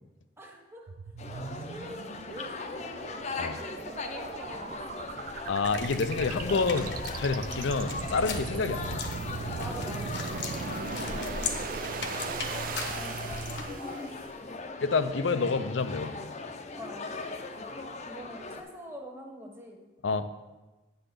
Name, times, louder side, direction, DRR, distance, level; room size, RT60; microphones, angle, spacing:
voice 1, 0.4-0.9 1.3-5.2 7.5-7.8 8.4-8.7 9.6-10.6 11.0-12.1 12.6-14.1 16.7-17.4 18.0-19.8, equal, 15° right, 1 dB, 1.2 m, -46 dB
sound 1, 0.9-14.3, right 5 dB, 50° right, 0.3 m, -39 dB
sound 2, 1.2-18.6, left 3 dB, 40° left, 0.6 m, -39 dB
voice 2, 5.5-9.1 14.8-16.1 20.0-20.3, left 4 dB, 90° left, 11 dB, 0.5 m, -28 dB
sound 3, 5.6-13.6, left 2 dB, 65° left, 0.9 m, -38 dB
8.6 x 4.0 x 6.7 m, 1.1 s
head